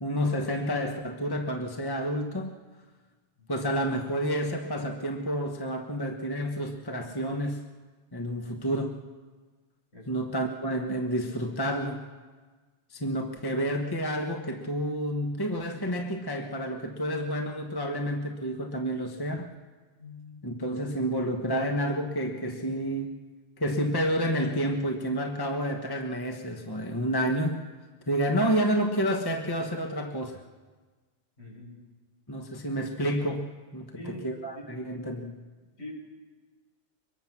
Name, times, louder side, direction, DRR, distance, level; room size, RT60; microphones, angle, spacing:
voice 1, 0.0-2.5 3.5-7.6 8.1-9.0 10.1-12.0 12.9-19.5 20.4-23.2 23.6-27.6 28.1-30.4 32.3-35.4, equal, 20° left, 3 dB, 1.2 m, -29 dB
voice 2, 20.0-20.5 31.4-31.8 33.9-34.3 34.5-34.9 35.8-36.0, left 1 dB, 65° left, -3 dB, 7.7 m, -44 dB
23.5 x 22.0 x 6.0 m, 1.4 s
omnidirectional pair, 1.2 m